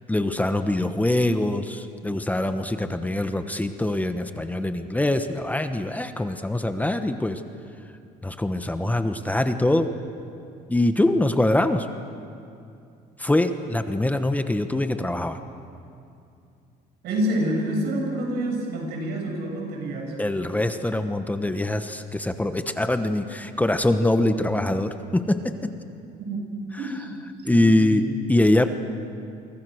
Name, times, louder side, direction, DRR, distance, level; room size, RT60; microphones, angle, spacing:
voice 1, 0.1-7.4 8.2-9.9 10.7-11.9 13.2-15.4 20.2-25.7 27.4-28.7, left 1 dB, 10° left, 8 dB, 1.1 m, -23 dB
voice 2, 17.0-20.2 26.3-26.4 26.8-28.0, right 1 dB, 80° right, 1 dB, 7.3 m, -28 dB
30.0 x 24.0 x 6.5 m, 2.5 s
cardioid pair, 110°, 17 cm